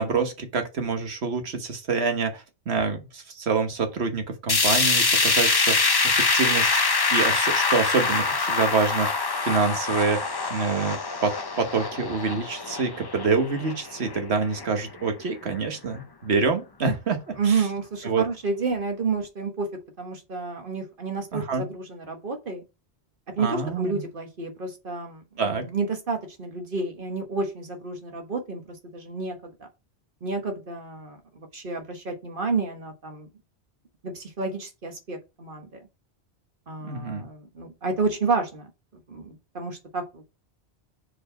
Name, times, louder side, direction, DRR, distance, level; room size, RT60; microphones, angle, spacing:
voice 1, 0.0-5.9 6.2-6.8 7.1-9.2 9.4-17.7 18.0-18.2 21.3-21.7 23.4-24.0 25.4-25.7 36.8-37.2, right 4 dB, 80° right, 1.5 m, -26 dB
sound 1, 4.5-14.6 15.0-15.1 15.5-15.6 16.5-16.6, left 4 dB, 25° left, 0.6 m, -24 dB
voice 2, 17.4-19.7 20.0-22.6 23.4-29.5 30.2-33.3 34.0-35.7 36.7-38.7 39.1-40.2, right 4 dB, 55° right, 1.5 m, -30 dB
4.9 x 4.5 x 5.4 m
omnidirectional pair, 1.1 m